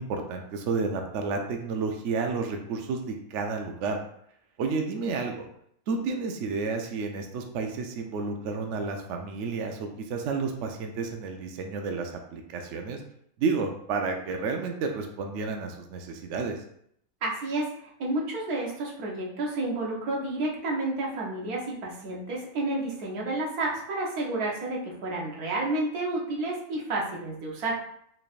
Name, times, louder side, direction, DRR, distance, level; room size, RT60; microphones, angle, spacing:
voice 1, 0.0-4.0 4.6-5.5 5.9-13.0 13.4-16.6, right 4 dB, 65° right, 3 dB, 0.8 m, -31 dB
voice 2, 17.2-27.8, right 2 dB, 90° right, -3 dB, 1.4 m, -30 dB
4.1 x 3.3 x 2.4 m, 0.69 s
omnidirectional pair, 1.5 m